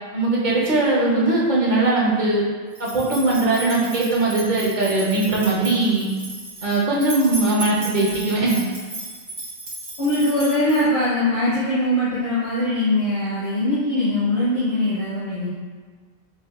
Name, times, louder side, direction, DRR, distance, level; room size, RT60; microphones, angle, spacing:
voice 1, 0.1-2.4 2.8-6.1 6.6-8.7, right 2 dB, 50° right, -6 dB, 0.9 m, -20 dB
sound 1, 2.7-11.1, right 1 dB, 80° right, 1.3 m, -35 dB
voice 2, 10.0-15.5, left 1 dB, 75° left, -13 dB, 1.5 m, -21 dB
5.6 x 2.4 x 2.3 m, 1.5 s
omnidirectional pair, 1.1 m